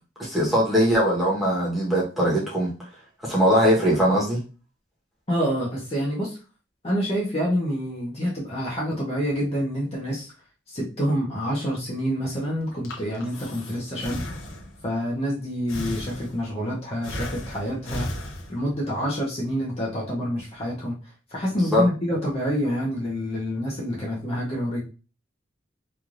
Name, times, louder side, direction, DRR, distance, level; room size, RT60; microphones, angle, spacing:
voice 1, 0.2-2.7 3.2-4.4 21.5-21.8, equal, ahead, -6 dB, 1.0 m, -21 dB
voice 2, 5.3-6.4 6.8-10.3 10.7-14.3 14.8-18.1 18.5-21.0 21.3-24.8, equal, 30° left, -5 dB, 0.7 m, -27 dB
Breathing, 12.6-14.9 15.7-16.6 17.0-18.9, left 1 dB, 85° left, 0.7 m, -35 dB
3.1 x 2.5 x 2.5 m, 0.33 s
head